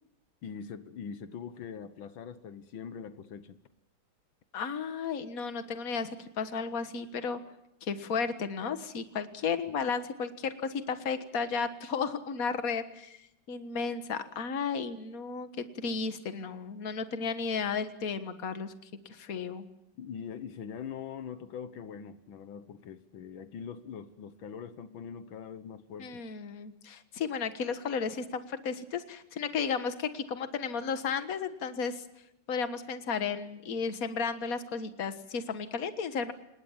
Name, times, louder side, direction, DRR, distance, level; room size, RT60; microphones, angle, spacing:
voice 1, 0.4-3.6 20.0-26.2, left 7 dB, 80° left, 11 dB, 1.9 m, -42 dB
voice 2, 4.5-7.4 7.8-18.7 19.1-19.6 26.0-32.0 32.5-36.3, left 5 dB, 50° left, 9 dB, 1.9 m, -34 dB
27.0 x 21.0 x 7.3 m, 0.83 s
omnidirectional pair, 2.1 m